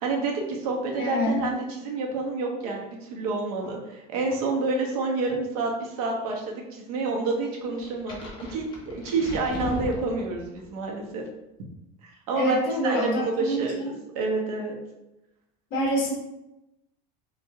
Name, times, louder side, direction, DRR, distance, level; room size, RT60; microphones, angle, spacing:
voice 1, 0.0-11.2 12.0-12.6 12.8-14.8, right 3 dB, 75° right, 0 dB, 1.2 m, -29 dB
voice 2, 1.0-1.5 12.3-13.9 15.7-16.1, equal, 50° left, -2 dB, 1.1 m, -26 dB
sound 1, 7.8-10.6, left 2 dB, 25° left, 0.9 m, -37 dB
4.8 x 2.6 x 3.5 m, 0.92 s
cardioid pair, 165°, 19 cm